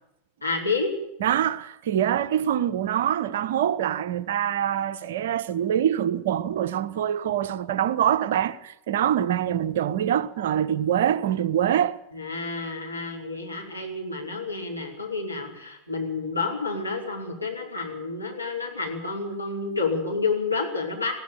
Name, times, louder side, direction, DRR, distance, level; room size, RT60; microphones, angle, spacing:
voice 1, 0.4-0.9 12.1-21.1, left 4 dB, 85° left, 4.9 m, -29 dB
voice 2, 1.2-12.0, right 10 dB, 55° right, 1.0 m, -24 dB
20.5 x 15.0 x 9.0 m
figure-of-eight pair, 90°, 0 cm